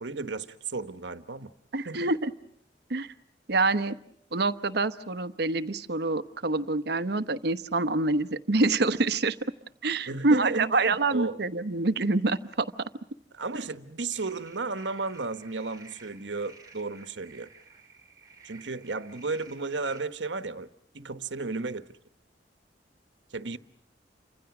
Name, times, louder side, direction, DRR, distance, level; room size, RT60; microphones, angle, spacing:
voice 1, 0.0-1.5 1.8-2.1 10.1-11.4 13.3-17.5 18.4-20.7 20.9-21.9 23.3-23.6, right 3 dB, 80° right, 1.3 m, -34 dB
voice 2, 1.7-2.3 2.9-3.1 3.5-3.9 4.3-9.4 9.8-12.7, right 3 dB, 65° right, 1.0 m, -26 dB
sound 1, 14.1-20.0, right 4 dB, 20° right, 4.2 m, -53 dB
29.5 x 25.5 x 6.0 m
head